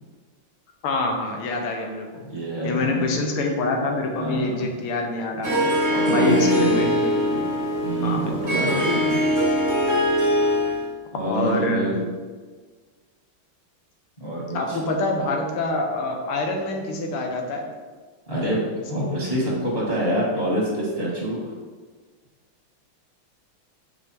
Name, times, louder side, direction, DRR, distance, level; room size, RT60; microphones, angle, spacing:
voice 1, 0.8-2.2 2.6-5.7 6.1-7.5 8.0-8.6 11.3-11.9 14.5-17.7, left 2 dB, 85° left, 2 dB, 1.8 m, -26 dB
voice 2, 2.2-3.2 4.2-4.6 5.9-6.7 7.8-9.1 10.5-10.7 11.1-12.0 14.2-14.8 18.3-21.5, right 1 dB, 20° left, -5 dB, 1.0 m, -26 dB
Harp, 5.4-10.9, equal, 20° right, 0.5 m, -22 dB
5.7 x 4.3 x 4.4 m, 1.5 s
omnidirectional pair, 2.4 m